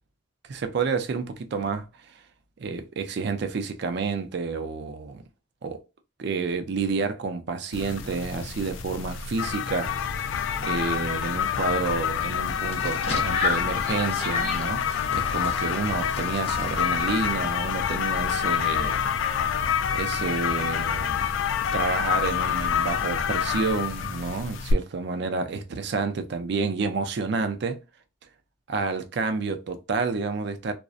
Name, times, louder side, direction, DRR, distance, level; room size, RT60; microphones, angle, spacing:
voice 1, 0.5-1.9 2.6-5.2 5.6-5.8 6.2-9.9 10.6-19.0 19.9-21.2 21.7-27.8 28.7-30.7, right 4 dB, 60° right, 0.4 m, -29 dB
sound 1, 7.7-24.7, left 8 dB, 80° left, 0.3 m, -27 dB
sound 2, 12.5-17.3, left 4 dB, 35° left, 0.6 m, -33 dB
2.5 x 2.0 x 2.4 m
head